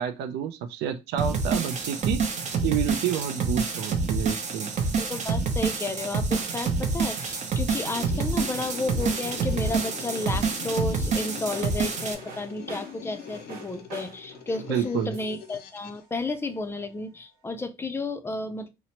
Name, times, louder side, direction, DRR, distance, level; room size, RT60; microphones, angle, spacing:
voice 1, 0.0-2.3 2.6-4.7 14.7-15.1, right 9 dB, 80° right, 9 dB, 0.4 m, -29 dB
sound 1, 1.2-12.1, right 4 dB, 45° right, 0.7 m, -27 dB
sound 2, 4.7-16.6, right 3 dB, 65° right, 1.2 m, -48 dB
voice 2, 5.0-18.7, left 3 dB, 15° left, 9 dB, 0.4 m, -32 dB
sound 3, 7.8-16.0, left 9 dB, 70° left, 0.5 m, -43 dB
2.9 x 2.0 x 2.8 m, 0.24 s
cardioid pair, 110°, 17 cm